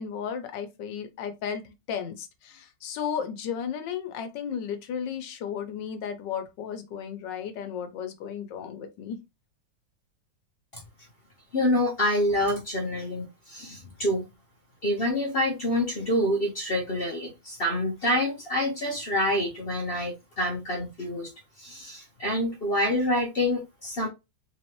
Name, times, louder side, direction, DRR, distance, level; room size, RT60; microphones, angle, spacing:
voice 1, 0.0-9.2, left 7 dB, 80° left, 1.4 m, -34 dB
voice 2, 11.5-14.3 14.8-21.3 21.6-24.1, left 1 dB, 45° left, 0.7 m, -27 dB
3.8 x 3.1 x 2.9 m
omnidirectional pair, 2.0 m